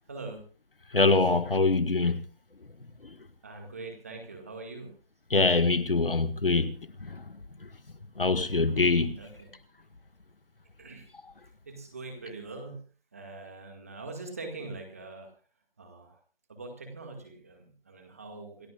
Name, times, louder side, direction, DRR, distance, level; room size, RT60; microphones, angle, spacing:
voice 1, 0.1-0.4 3.4-4.9 9.2-9.5 10.8-11.1 11.6-12.8 13.1-15.3 15.8-16.2 16.5-18.7, right 3 dB, 15° right, 1.9 m, -43 dB
voice 2, 0.9-2.2 5.3-6.8 7.1-7.2 8.2-9.1, left 3 dB, 70° left, 1.8 m, -24 dB
27.0 x 14.0 x 2.4 m
figure-of-eight pair, 170°, 29 cm